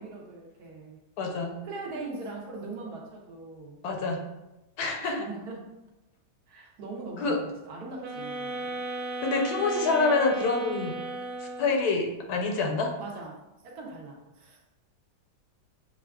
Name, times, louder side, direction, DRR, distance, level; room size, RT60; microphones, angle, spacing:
voice 1, 0.0-1.0 1.6-3.8 5.0-5.6 6.5-8.8 13.0-14.6, right 3 dB, 70° right, -1 dB, 1.1 m, -41 dB
voice 2, 1.2-1.5 3.8-4.2 4.8-5.2 7.2-7.4 9.2-10.9 11.6-12.9, left 3 dB, 75° left, 2 dB, 1.0 m, -26 dB
sound 1, 8.0-11.9, right 2 dB, 90° right, 1.2 m, -35 dB
5.9 x 2.4 x 2.2 m, 0.96 s
omnidirectional pair, 1.8 m